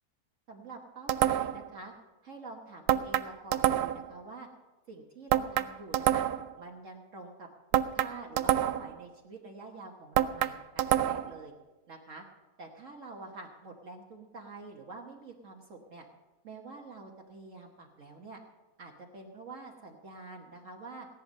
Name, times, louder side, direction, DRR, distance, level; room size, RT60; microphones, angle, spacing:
voice 1, 0.5-1.9 2.2-4.5 4.9-6.2 6.6-11.5 11.9-12.2 12.6-16.0 16.4-18.4 18.8-21.1, right 3 dB, 55° right, 0 dB, 1.5 m, -47 dB
sound 1, 1.1-1.7 2.9-4.1 5.3-6.5 7.7-9.0 10.2-11.4, right 12 dB, 85° right, 1.2 m, -27 dB
16.0 x 11.0 x 5.3 m, 1.2 s
omnidirectional pair, 1.7 m